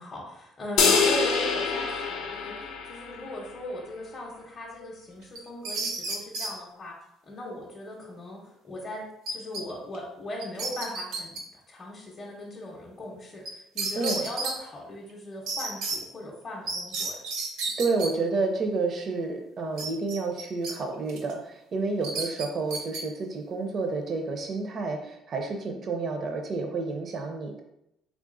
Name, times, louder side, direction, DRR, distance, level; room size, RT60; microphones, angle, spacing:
voice 1, 0.0-2.6 2.8-6.9 7.2-9.0 9.3-17.2, left 1 dB, 25° left, -4 dB, 0.6 m, -38 dB
sound 1, 0.8-3.3, left 5 dB, 80° left, 0.6 m, -25 dB
sound 2, 5.4-6.5 9.3-9.6 9.9-10.0 10.4-11.4 13.5-13.6 13.8-14.5 15.5-16.0 16.7-18.1 19.8-20.7 21.1-21.3 22.0-23.0, right 3 dB, 85° right, 0.7 m, -32 dB
voice 2, 14.0-14.3 17.8-27.6, right 3 dB, 40° right, 4 dB, 0.4 m, -30 dB
3.5 x 3.5 x 2.5 m, 0.81 s
cardioid pair, 140°, 0 cm